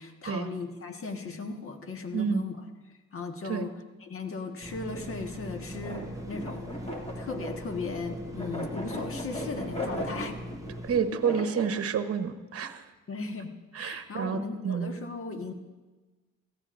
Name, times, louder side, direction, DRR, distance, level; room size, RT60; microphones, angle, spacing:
voice 1, 0.0-2.5 3.1-3.7 4.0-6.7 7.1-10.4 13.1-15.5, left 4 dB, 45° left, 5 dB, 1.5 m, -37 dB
voice 2, 2.1-2.4 3.4-3.7 10.8-12.8 13.7-14.9, right 7 dB, 50° right, 9 dB, 1.0 m, -29 dB
sound 1, 4.6-11.0, equal, 10° right, 0.7 m, -41 dB
sound 2, 4.9-11.8, equal, 20° left, 2.3 m, -38 dB
17.0 x 14.5 x 2.6 m, 1.2 s
cardioid pair, 90°, 30 cm